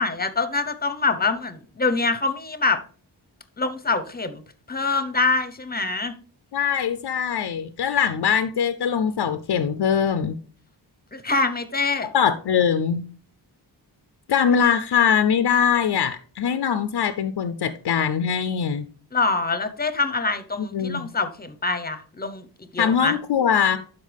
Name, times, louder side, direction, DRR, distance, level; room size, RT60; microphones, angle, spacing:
voice 1, 0.0-2.8 3.6-4.4 4.7-6.1 11.1-12.1 19.1-23.1, left 3 dB, 20° left, 0.8 m, -25 dB
voice 2, 6.5-10.3 12.1-13.1 14.3-18.9 20.6-21.0 22.8-23.8, left 7 dB, 70° left, 0.6 m, -22 dB
12.0 x 4.4 x 3.4 m
wide cardioid pair, 90°, 42 cm